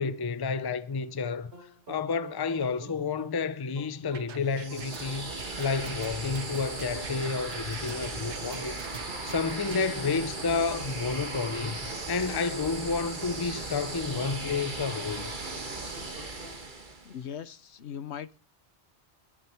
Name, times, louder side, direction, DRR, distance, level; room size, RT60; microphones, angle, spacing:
voice 1, 0.0-5.3 5.6-15.3, left 5 dB, 25° left, 0.5 m, -31 dB
sound 1, 1.5-16.6, right 2 dB, 60° right, 4.4 m, -49 dB
sound 2, 4.1-9.8, right 7 dB, 85° right, 1.2 m, -44 dB
sound 3, 4.5-17.2, right 3 dB, 45° right, 1.8 m, -37 dB
voice 2, 17.0-18.4, left 8 dB, 75° left, 1.1 m, -39 dB
20.0 x 9.0 x 4.5 m
omnidirectional pair, 1.2 m